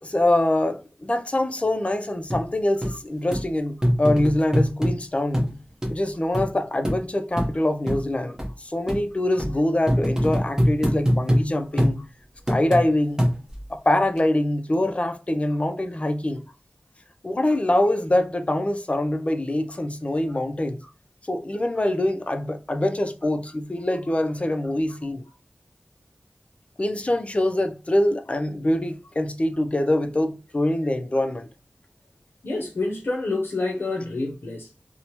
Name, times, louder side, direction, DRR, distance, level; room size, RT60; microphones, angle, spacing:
voice 1, 0.0-5.4 5.9-12.0 12.5-13.2 13.7-16.5 17.2-20.8 21.3-25.2 26.8-31.5, left 1 dB, 35° left, 0.4 m, -24 dB
sound 1, 2.3-2.4 2.8-2.9 3.3-3.4 3.8-4.9 5.3-5.5 5.8-5.9 6.3-6.5 6.8-7.0 7.4-7.5 7.9-8.0 8.4-8.5 8.9-9.0 9.4-9.5 9.9-11.4 11.8-12.0 12.5-12.8 13.2-13.6 14.2-14.3, equal, 15° right, 0.7 m, -22 dB
voice 2, 32.4-34.7, left 2 dB, 80° left, 0.6 m, -28 dB
3.0 x 2.0 x 2.8 m
wide cardioid pair, 50°, 4 cm